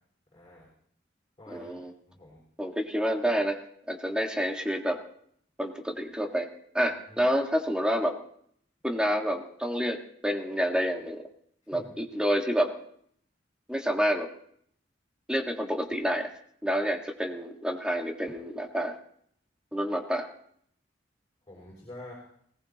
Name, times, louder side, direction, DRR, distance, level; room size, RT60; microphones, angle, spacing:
voice 1, 0.3-0.7 1.4-1.8 2.1-2.4 7.1-7.3 11.7-11.9 21.5-22.1, left 1 dB, 20° left, -6 dB, 5.8 m, -47 dB
voice 2, 1.5-1.9 2.6-3.6 3.9-5.0 5.6-6.5 6.7-8.1 8.8-11.2 11.7-12.7 13.7-14.3 15.3-16.3 16.6-18.9 19.7-20.3, equal, 5° right, 2 dB, 1.6 m, -28 dB
20.0 x 18.5 x 2.9 m, 0.65 s
head